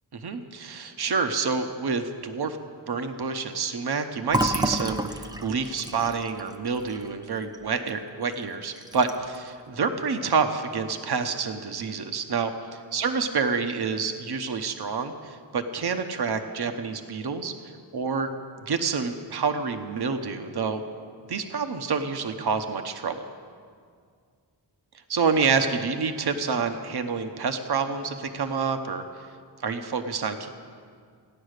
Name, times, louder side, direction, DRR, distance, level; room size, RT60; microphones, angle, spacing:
voice 1, 0.2-2.6 2.9-17.5 17.9-18.3 18.7-20.8 21.3-23.2 25.1-29.1 29.6-30.5, right 5 dB, 60° right, 7 dB, 0.9 m, -28 dB
Fill (with liquid), 4.3-8.0 8.3-8.4 8.8-9.4, right 1 dB, 10° right, 0.6 m, -30 dB
15.5 x 10.0 x 6.5 m, 2.1 s
wide cardioid pair, 75°, 45 cm